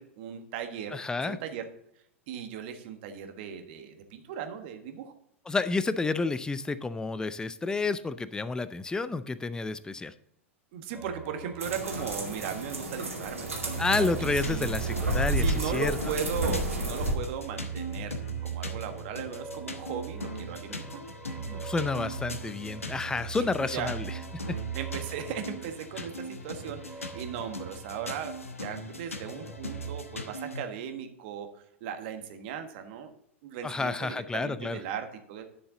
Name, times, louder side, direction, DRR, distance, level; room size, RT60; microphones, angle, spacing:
voice 1, 0.0-1.7 2.3-5.1 10.7-14.7 15.4-21.0 21.5-21.6 23.4-23.9 24.7-28.3 28.6-31.5 31.8-33.1 33.4-35.4, right 8 dB, 55° right, 6 dB, 1.5 m, -37 dB
voice 2, 0.9-1.4 5.5-10.1 13.8-16.0 21.4-24.1 24.5-24.6 33.6-34.8, left 3 dB, 10° left, 14 dB, 0.5 m, -30 dB
sound 1, 10.9-12.5 12.9-16.4 17.3-28.6 28.9-30.0, right 9 dB, 15° right, 2.3 m, -41 dB
sound 2, 11.6-17.1, right 1 dB, 85° right, 2.2 m, -31 dB
sound 3, 13.7-30.6, left 2 dB, 85° left, 1.1 m, -41 dB
10.5 x 6.7 x 3.9 m, 0.74 s
figure-of-eight pair, 95°, 7 cm